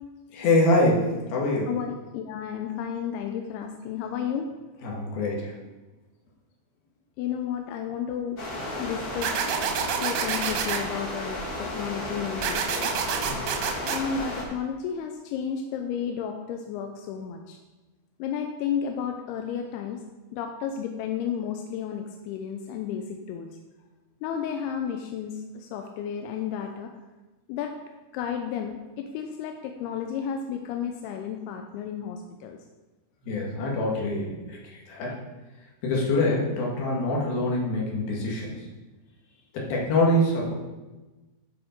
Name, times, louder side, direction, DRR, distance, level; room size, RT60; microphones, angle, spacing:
voice 1, 0.3-1.7 4.8-5.6 13.3-13.4 33.2-35.2 35.8-38.6 39.5-40.5, left 1 dB, 70° left, -3 dB, 3.6 m, -25 dB
voice 2, 1.7-4.5 7.2-8.4 8.8-9.4 10.0-12.9 13.9-17.6 18.2-20.0 20.3-23.5 24.2-26.9 27.5-27.7 28.1-32.6, left 8 dB, 90° left, 4 dB, 2.6 m, -32 dB
sound 1, 8.4-14.4, left 1 dB, 55° left, 1.0 m, -33 dB
sound 2, 9.2-10.8 12.4-14.0, right 8 dB, 75° right, 1.9 m, -28 dB
11.0 x 4.9 x 5.1 m, 1.2 s
omnidirectional pair, 4.6 m